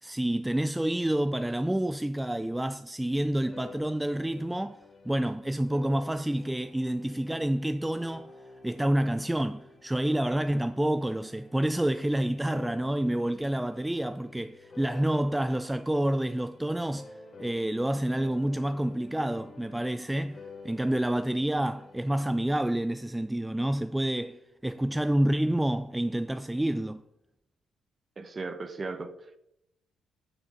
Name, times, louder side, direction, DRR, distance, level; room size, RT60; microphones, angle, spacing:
voice 1, 0.0-4.8 5.0-8.3 8.6-27.0, right 1 dB, 10° right, 0.3 m, -28 dB
sound 1, 3.4-17.8 18.1-22.5, left 4 dB, 35° left, 2.0 m, -51 dB
voice 2, 28.2-29.4, right 3 dB, 35° right, 1.0 m, -37 dB
7.1 x 6.3 x 5.8 m
cardioid pair, 90°, 0 cm